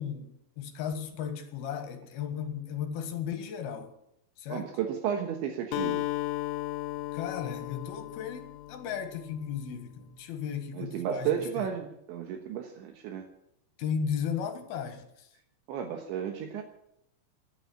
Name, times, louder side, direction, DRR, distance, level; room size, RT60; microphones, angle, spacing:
voice 1, 0.0-3.9 4.4-4.7 7.1-11.7 13.8-15.3, left 7 dB, 60° left, 7 dB, 3.1 m, -35 dB
voice 2, 4.5-6.0 10.7-13.2 15.7-16.6, right 8 dB, 75° right, 4 dB, 3.5 m, -33 dB
Acoustic guitar, 5.7-9.6, left 17 dB, 90° left, 3.5 m, -35 dB
15.0 x 11.0 x 8.5 m, 0.78 s
omnidirectional pair, 5.6 m